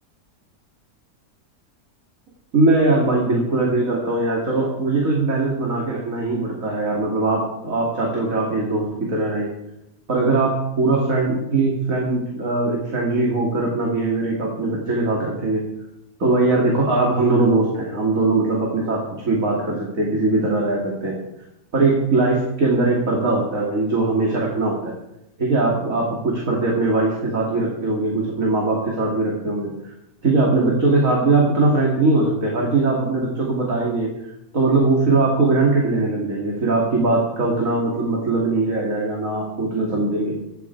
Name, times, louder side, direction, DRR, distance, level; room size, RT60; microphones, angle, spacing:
voice 1, 2.5-9.5 10.1-15.6 16.2-21.2 21.7-24.9 25.4-29.9 30.2-34.1 34.5-40.3, right 2 dB, 65° right, -3 dB, 3.1 m, -20 dB
15.5 x 12.0 x 4.7 m, 0.86 s
omnidirectional pair, 1.5 m